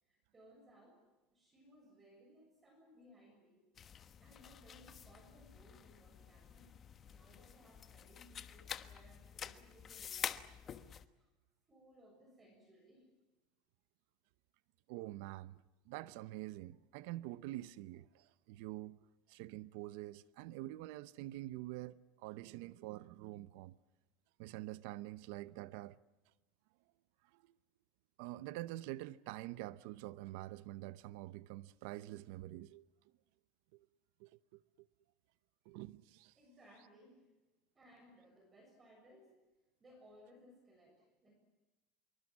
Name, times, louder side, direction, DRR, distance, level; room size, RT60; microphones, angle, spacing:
voice 1, 0.0-1.0 1.3-3.6 3.9-6.7 7.0-10.9 11.2-11.3 11.7-13.1 36.4-37.3 37.7-39.4 39.8-41.4, equal, 20° right, 6.7 m, -63 dB
sound 1, 3.8-11.0, left 8 dB, 30° left, 1.2 m, -48 dB
voice 2, 14.9-15.6 15.9-23.7 24.4-26.0 27.3-27.5 28.2-32.9 33.7-33.9 34.2-34.6 35.7-36.3, right 16 dB, 70° right, 0.8 m, -46 dB
26.0 x 24.0 x 7.4 m
supercardioid pair, 145°, 0 cm